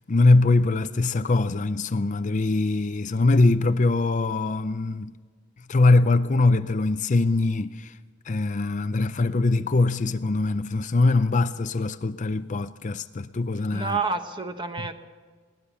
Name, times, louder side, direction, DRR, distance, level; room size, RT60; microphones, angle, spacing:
voice 1, 0.0-5.1 5.7-8.0 8.3-14.0, left 3 dB, 35° left, 0.5 m, -22 dB
voice 2, 13.7-14.9, right 4 dB, 25° right, 1.2 m, -29 dB
21.5 x 18.0 x 7.1 m
head